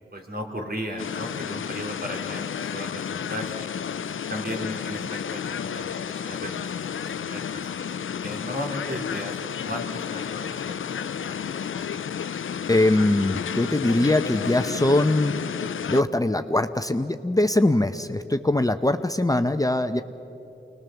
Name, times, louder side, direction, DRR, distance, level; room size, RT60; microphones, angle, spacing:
voice 1, 0.1-3.7 4.3-7.7 8.2-11.9, equal, 50° right, 1 dB, 3.1 m, -36 dB
sound 1, 1.0-16.0, left 8 dB, 80° left, 0.5 m, -31 dB
voice 2, 12.7-15.3 15.9-20.0, left 1 dB, 15° left, 8 dB, 0.8 m, -22 dB
26.0 x 20.0 x 7.0 m, 2.9 s
cardioid pair, 50°, 20 cm